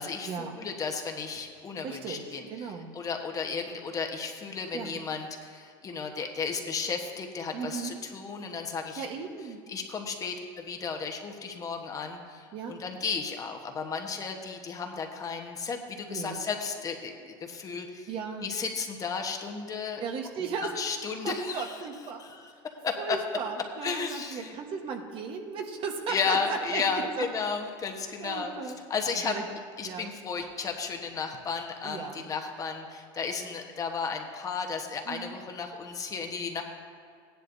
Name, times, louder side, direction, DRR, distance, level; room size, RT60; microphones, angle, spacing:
voice 1, 0.0-9.0 9.7-18.1 18.4-20.0 20.6-21.7 22.2-22.5 22.8-23.2 23.8-24.5 26.1-28.5 28.9-29.3 29.8-36.6, left 5 dB, 30° left, 3 dB, 1.2 m, -34 dB
voice 2, 1.8-2.9 4.7-5.0 7.5-8.0 9.0-9.6 12.5-12.8 16.1-16.4 18.1-18.5 20.0-20.7 21.2-22.2 23.0-27.3 28.2-28.8 29.2-29.4 29.8-30.1 31.8-32.3 35.0-35.4, right 5 dB, 50° right, 4 dB, 1.2 m, -36 dB
15.5 x 10.5 x 2.7 m, 2.2 s
supercardioid pair, 110°, 12 cm